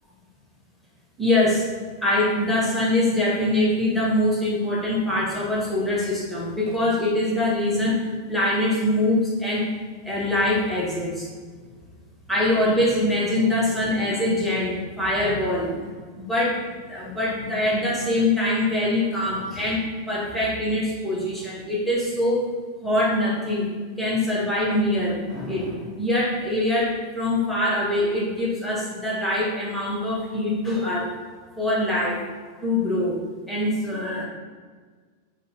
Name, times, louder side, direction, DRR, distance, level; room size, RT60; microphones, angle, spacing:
voice 1, 1.2-1.7 2.0-9.7 10.0-11.3 12.3-22.4 22.8-23.7 24.0-31.2 31.6-32.2 32.6-33.2 33.5-34.2, left 1 dB, ahead, -7 dB, 1.0 m, -23 dB
7.0 x 4.1 x 6.1 m, 1.5 s
omnidirectional pair, 3.5 m